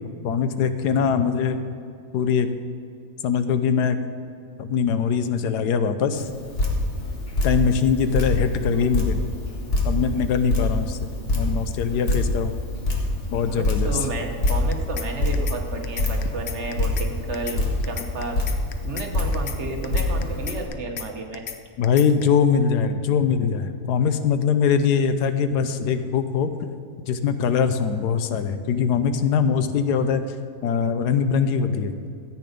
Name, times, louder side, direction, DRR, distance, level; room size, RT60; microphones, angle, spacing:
voice 1, 0.2-1.7 2.1-2.5 3.2-4.0 4.6-6.3 7.4-9.2 9.8-12.5 13.3-14.0 21.8-26.5 27.1-30.2 30.6-31.9, left 6 dB, 90° left, 10 dB, 1.3 m, -22 dB
Drip, 6.2-20.7, left 2 dB, 40° left, 2.0 m, -26 dB
voice 2, 13.5-18.4 18.8-21.4, right 3 dB, 50° right, 3 dB, 1.3 m, -32 dB
sound 1, 14.5-15.1 15.3-15.6 15.8-17.1 17.3-17.6 17.8-19.1 19.3-19.6 19.8-21.1 21.3-21.6 21.8-22.2, left 8 dB, 55° left, 0.8 m, -34 dB
14.0 x 9.0 x 5.2 m, 2.5 s
omnidirectional pair, 1.7 m